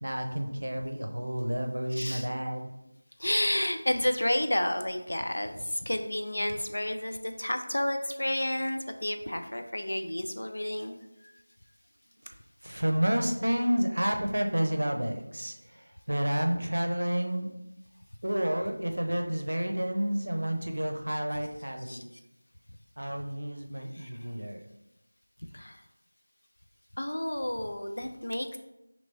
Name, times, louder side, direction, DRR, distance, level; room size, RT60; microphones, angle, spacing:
voice 1, 0.0-2.7 12.2-12.3 12.6-17.5 18.2-22.2 23.0-24.7, right 1 dB, 90° right, 5 dB, 0.5 m, -30 dB
voice 2, 1.9-2.3 3.2-11.3 21.9-22.0 23.9-24.3 25.5-25.8 27.0-28.6, left 1 dB, 65° left, 7 dB, 0.4 m, -31 dB
3.3 x 2.9 x 2.7 m, 0.90 s
figure-of-eight pair, 180°, 0 cm